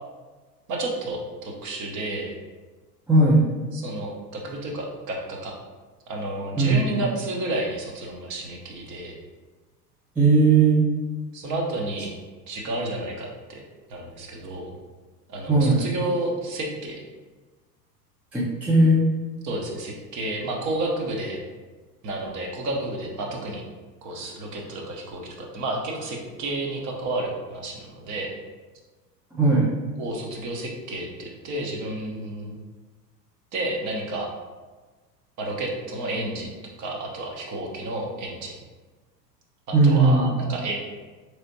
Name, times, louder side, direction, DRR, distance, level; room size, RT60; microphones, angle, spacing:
voice 1, 0.7-2.3 3.7-5.5 6.1-9.1 11.3-12.1 12.5-13.6 13.9-14.7 15.3-17.0 19.4-21.4 22.0-23.6 24.0-28.3 30.0-32.6 33.5-34.3 35.4-38.6 39.8-40.8, right 1 dB, 35° right, 0 dB, 1.0 m, -31 dB
voice 2, 3.1-3.4 6.6-7.0 10.2-10.8 15.5-15.8 18.3-19.1 29.3-29.7 39.7-40.3, right 2 dB, 5° right, -6 dB, 0.3 m, -18 dB
4.3 x 3.3 x 2.7 m, 1.3 s
hypercardioid pair, 85°, 49 cm